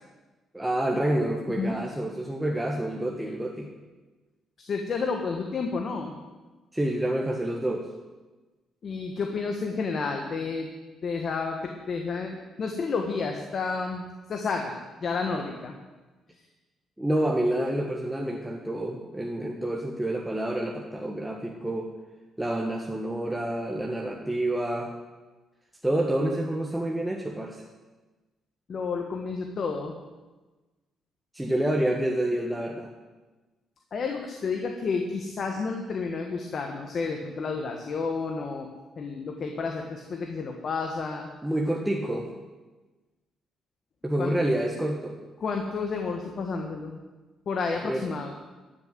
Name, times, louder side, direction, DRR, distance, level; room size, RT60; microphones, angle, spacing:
voice 1, 0.5-3.7 6.7-7.9 17.0-21.9 22.4-24.9 25.8-27.6 31.3-32.9 41.4-42.3 44.0-45.2 47.8-48.1, right 1 dB, 5° right, -1 dB, 1.6 m, -28 dB
voice 2, 4.6-6.1 8.8-10.7 11.0-15.7 28.7-29.9 33.9-38.7 39.0-41.3 44.2-44.3 45.4-47.0 47.4-48.3, left 4 dB, 50° left, 3 dB, 1.6 m, -31 dB
13.0 x 7.1 x 9.2 m, 1.2 s
cardioid pair, 90°, 0 cm